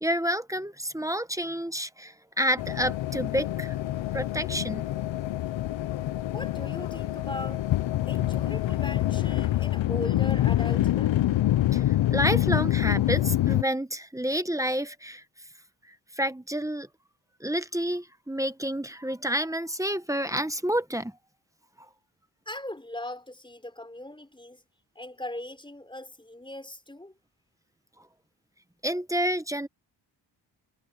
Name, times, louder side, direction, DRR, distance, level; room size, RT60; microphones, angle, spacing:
voice 1, 0.0-3.8 4.1-4.8 11.7-15.2 15.8-16.9 17.4-21.2 28.8-29.7, equal, 5° right, 1.1 m, -29 dB
sound 1, 2.6-13.6, left 14 dB, 75° left, 0.7 m, -26 dB
voice 2, 6.3-7.7 8.1-11.2 22.5-24.6 25.0-27.1, left 1 dB, 10° left, 5.6 m, -39 dB
wide cardioid pair, 105°, 45 cm